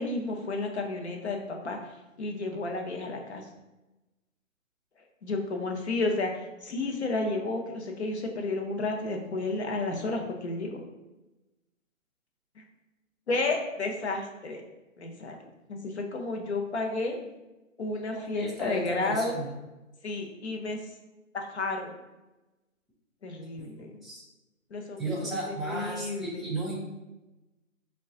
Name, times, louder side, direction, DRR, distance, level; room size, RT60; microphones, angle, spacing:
voice 1, 0.0-1.8 2.2-3.4 5.2-10.8 13.3-14.6 15.0-15.4 15.7-17.2 17.8-19.4 20.0-20.8 21.3-22.0 23.2-24.0 24.7-26.5, left 2 dB, 55° left, 2 dB, 0.6 m, -32 dB
voice 2, 18.3-19.5 23.6-23.7 24.0-24.2 25.0-26.8, right 2 dB, ahead, -7 dB, 0.3 m, -34 dB
3.0 x 2.3 x 3.6 m, 1.1 s
hypercardioid pair, 170°, 41 cm